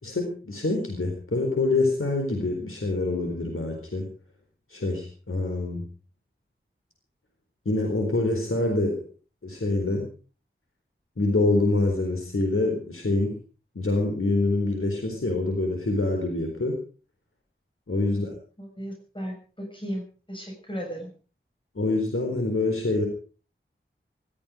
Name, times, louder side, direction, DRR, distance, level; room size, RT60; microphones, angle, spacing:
voice 1, 0.0-4.1 4.7-5.8 7.7-9.0 9.4-10.1 11.2-13.3 13.7-16.8 17.9-18.3 21.8-23.1, left 2 dB, 80° left, 2 dB, 4.2 m, -25 dB
voice 2, 18.0-21.1, equal, 25° left, 1 dB, 6.8 m, -36 dB
20.0 x 14.0 x 5.1 m, 0.39 s
wide cardioid pair, 55°, 21 cm